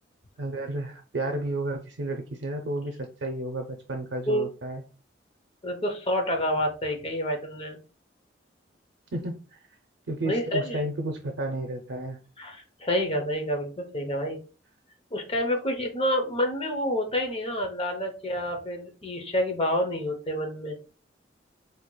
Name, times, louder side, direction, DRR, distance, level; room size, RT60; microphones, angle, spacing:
voice 1, 0.4-4.8 9.1-9.6 10.1-12.2, right 1 dB, 75° right, 3 dB, 0.5 m, -32 dB
voice 2, 5.6-7.8 10.2-10.8 12.4-14.4 15.1-20.8, equal, 35° left, 5 dB, 0.7 m, -28 dB
4.5 x 2.8 x 2.2 m, 0.36 s
head